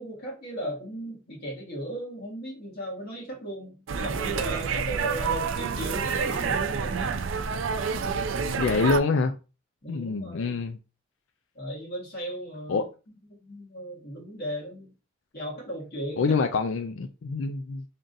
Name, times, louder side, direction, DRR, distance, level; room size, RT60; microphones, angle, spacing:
voice 1, 0.0-7.1 9.8-10.6 11.5-12.9 13.4-14.9 15.3-16.2, right 1 dB, 50° left, 1.6 m, -36 dB
sound 1, 3.9-9.0, right 5 dB, 80° right, 0.4 m, -28 dB
voice 2, 8.6-9.3 9.9-10.8 12.7-12.8 16.2-17.8, left 4 dB, 75° left, 0.4 m, -26 dB
3.8 x 3.6 x 2.6 m
head